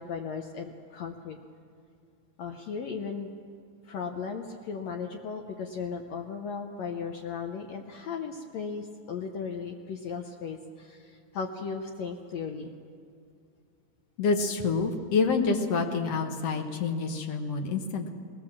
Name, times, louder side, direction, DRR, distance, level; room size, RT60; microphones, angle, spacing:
voice 1, 0.0-1.4 2.4-3.3 3.8-12.7, left 5 dB, 80° left, 3 dB, 1.5 m, -36 dB
voice 2, 14.2-18.1, left 4 dB, 65° left, 4 dB, 1.7 m, -27 dB
20.5 x 17.5 x 7.4 m, 2.3 s
omnidirectional pair, 4.2 m